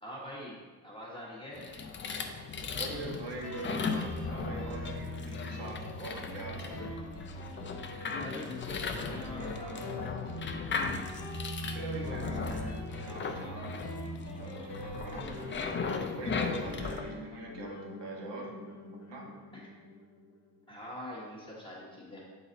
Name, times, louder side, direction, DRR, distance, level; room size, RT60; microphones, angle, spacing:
voice 1, 0.0-1.7 8.2-10.1 19.5-19.7 20.7-22.2, left 1 dB, 10° left, -5 dB, 1.4 m, -44 dB
sound 1, 1.5-17.0, left 4 dB, 30° left, 0.4 m, -37 dB
voice 2, 2.8-6.8 11.6-13.9 14.3-15.5 16.1-18.6 19.1-19.3, right 2 dB, 90° right, -2 dB, 1.5 m, -42 dB
Guitar, 3.4-20.6, left 1 dB, 75° left, 1.4 m, -42 dB
8.0 x 4.1 x 4.0 m, 1.4 s
wide cardioid pair, 165°, 41 cm